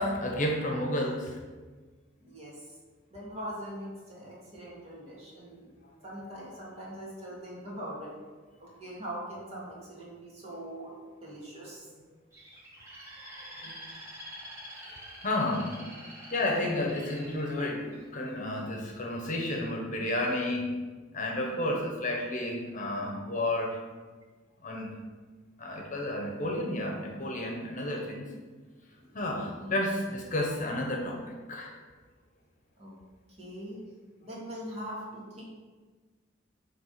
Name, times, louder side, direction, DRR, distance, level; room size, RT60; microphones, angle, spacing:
voice 1, 0.0-1.4 13.6-13.8 14.7-15.9 16.3-20.7 21.1-23.8 24.6-25.0 25.6-28.3 29.1-31.7, left 1 dB, 40° left, 1 dB, 1.2 m, -31 dB
voice 2, 2.2-2.5 3.1-5.7 6.0-8.2 8.6-10.9 11.2-11.8 21.5-21.8 29.1-29.2 29.6-29.8 32.8-32.9 33.4-33.8 34.2-35.4, equal, 35° right, -5 dB, 2.5 m, -42 dB
Bird, 12.3-18.4 18.9-19.3, equal, 15° right, 2.2 m, -47 dB
9.4 x 3.7 x 5.7 m, 1.4 s
head